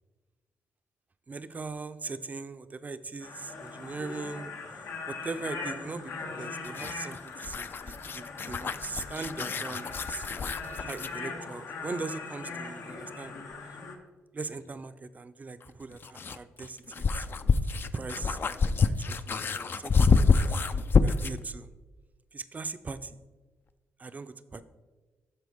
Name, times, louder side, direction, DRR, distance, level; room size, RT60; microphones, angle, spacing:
voice 1, 1.3-4.8 5.1-10.3 10.8-13.4 14.3-17.5 17.9-21.7 22.3-23.2 24.0-24.6, right 4 dB, 30° right, 12 dB, 0.5 m, -40 dB
sound 1, 3.2-14.0, left 4 dB, 80° left, 1.1 m, -40 dB
sound 2, 6.6-11.2 13.5-13.6 15.6-21.4, left 5 dB, 45° left, 0.4 m, -27 dB
12.5 x 4.4 x 3.5 m, 1.3 s
cardioid pair, 70°, 5 cm